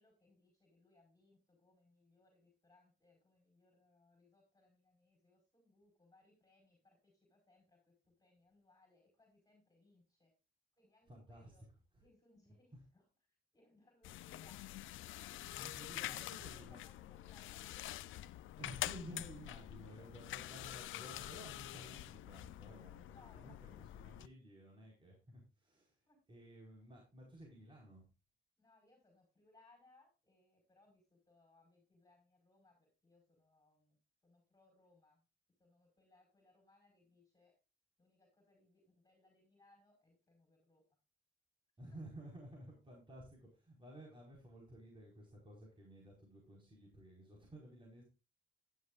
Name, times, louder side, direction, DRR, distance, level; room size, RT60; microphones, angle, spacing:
voice 1, 0.0-10.3 10.7-11.6 12.0-14.6 15.9-18.3 23.1-24.0 26.0-26.2 28.6-35.2 35.6-37.6 38.0-40.8, left 2 dB, 20° left, 2 dB, 4.9 m, -70 dB
voice 2, 11.1-11.5 15.6-16.8 18.6-26.0 26.3-28.1 41.8-48.0, right 1 dB, 25° right, -2 dB, 4.7 m, -54 dB
sound 1, 14.0-24.3, left 14 dB, 80° left, 0.6 m, -46 dB
13.0 x 11.0 x 2.5 m, 0.31 s
cardioid pair, 90°, 20 cm